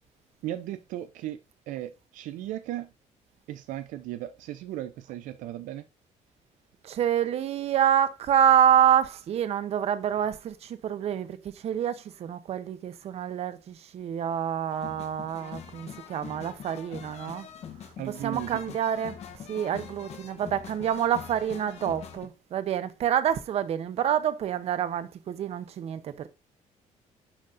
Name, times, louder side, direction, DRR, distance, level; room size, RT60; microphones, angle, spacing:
voice 1, 0.4-1.4 1.7-2.9 3.5-5.9 18.0-18.6, right 13 dB, 85° right, 0.5 m, -36 dB
voice 2, 6.8-17.5 18.2-19.2 19.5-26.1, right 9 dB, 55° right, 0.7 m, -27 dB
sound 1, 14.7-22.3, left 8 dB, 55° left, 1.0 m, -44 dB
11.0 x 3.9 x 2.5 m
cardioid pair, 130°, 13 cm